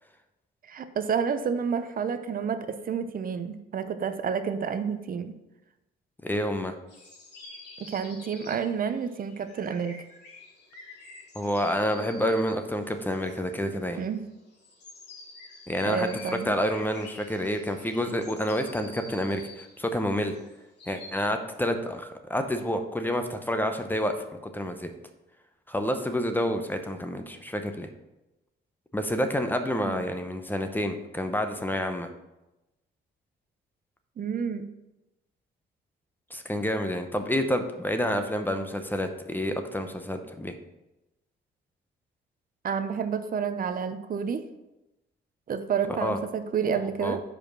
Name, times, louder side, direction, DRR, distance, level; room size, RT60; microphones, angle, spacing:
voice 1, 0.7-5.4 7.8-10.0 14.0-14.3 15.8-16.5 29.9-30.0 34.2-34.7 42.6-44.4 45.5-47.2, right 6 dB, 45° right, 10 dB, 0.6 m, -29 dB
voice 2, 6.2-6.7 11.3-14.0 15.7-20.3 20.9-24.9 25.7-27.9 28.9-32.1 36.3-40.5 46.0-46.2 47.0-47.2, equal, 10° left, 6 dB, 0.7 m, -29 dB
sound 1, 6.9-21.3, left 3 dB, 60° left, 2.1 m, -48 dB
5.0 x 4.9 x 6.1 m, 0.98 s
cardioid pair, 90°, 20 cm